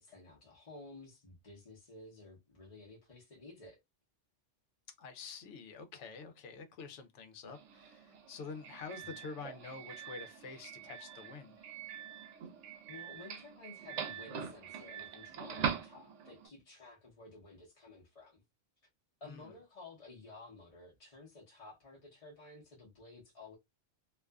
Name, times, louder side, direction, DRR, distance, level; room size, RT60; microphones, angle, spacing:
voice 1, 0.0-3.8 12.7-18.4 19.2-23.6, left 3 dB, 35° left, 0.8 m, -53 dB
voice 2, 5.0-11.5 19.2-19.5, left 4 dB, 80° left, 0.9 m, -47 dB
Doorbell, 7.4-16.5, right 7 dB, 85° right, 0.9 m, -43 dB
2.5 x 2.4 x 2.2 m
omnidirectional pair, 1.2 m